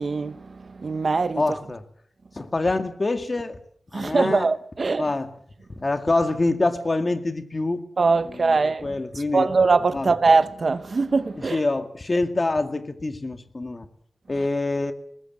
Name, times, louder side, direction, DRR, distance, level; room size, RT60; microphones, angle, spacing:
voice 1, 0.0-1.4 3.9-5.1 8.0-8.9 9.3-11.6, right 4 dB, 45° right, 0.9 m, -22 dB
voice 2, 1.4-1.8 2.4-3.6 3.9-4.5 5.0-5.3 5.8-7.8 8.3-9.5 9.9-10.1 11.4-13.9 14.3-14.9, left 2 dB, 30° left, 2.0 m, -25 dB
22.0 x 20.0 x 7.6 m
wide cardioid pair, 135°, 0 cm